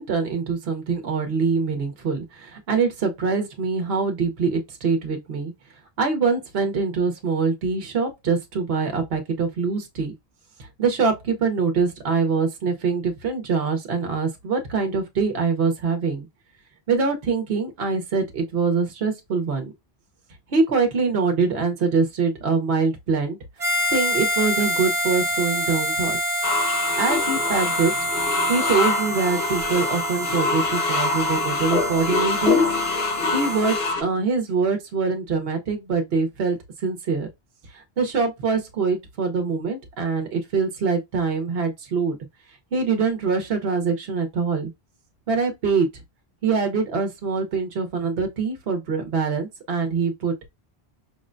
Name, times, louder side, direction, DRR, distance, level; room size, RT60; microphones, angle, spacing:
voice 1, 0.0-5.5 6.0-10.1 10.6-16.3 16.9-19.7 20.5-23.4 23.9-26.4 27.0-27.9 28.5-32.6 33.3-37.3 37.7-42.2 42.7-44.7 45.3-45.9 46.4-50.5, right 4 dB, 75° right, 1.0 m, -24 dB
Harmonica, 23.6-33.9, equal, 35° right, 0.8 m, -27 dB
sound 1, 26.4-34.0, left 3 dB, 80° left, 1.0 m, -25 dB
5.7 x 2.1 x 2.5 m
omnidirectional pair, 1.0 m